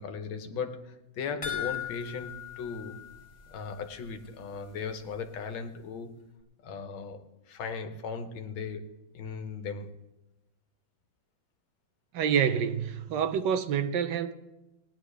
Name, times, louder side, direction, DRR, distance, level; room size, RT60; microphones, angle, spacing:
voice 1, 0.0-3.0 3.5-6.2 6.6-9.9, left 5 dB, 85° left, 1.8 m, -37 dB
sound 1, 1.4-4.0 4.3-4.4 4.8-4.9, left 9 dB, 30° left, 1.9 m, -38 dB
voice 2, 12.1-14.3, right 8 dB, 70° right, 1.2 m, -27 dB
19.0 x 10.0 x 3.3 m
omnidirectional pair, 2.1 m